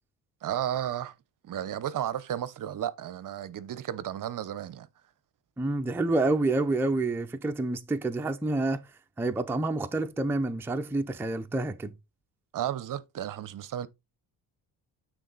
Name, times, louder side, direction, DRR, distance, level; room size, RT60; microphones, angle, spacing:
voice 1, 0.4-1.1 1.4-4.9 12.5-13.9, right 11 dB, 50° right, 0.7 m, -33 dB
voice 2, 5.6-8.8 9.2-11.9, right 2 dB, 5° right, 0.5 m, -28 dB
9.1 x 3.8 x 4.0 m
cardioid pair, 125°, 43 cm